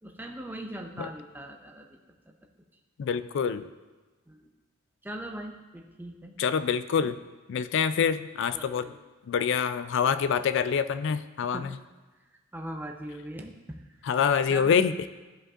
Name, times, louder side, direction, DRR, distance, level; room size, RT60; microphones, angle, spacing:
voice 1, 0.0-2.0 2.3-2.4 4.3-4.4 5.0-6.4 6.9-7.1 8.5-8.9 11.4-11.7 12.5-13.6 14.0-14.1 14.5-14.7, right 1 dB, 10° right, 2 dB, 0.6 m, -40 dB
voice 2, 3.0-3.7 6.4-7.2 7.5-8.9 9.3-11.7 14.1-15.1, left 7 dB, 60° left, 14 dB, 0.3 m, -26 dB
12.5 x 5.1 x 2.4 m, 1.3 s
head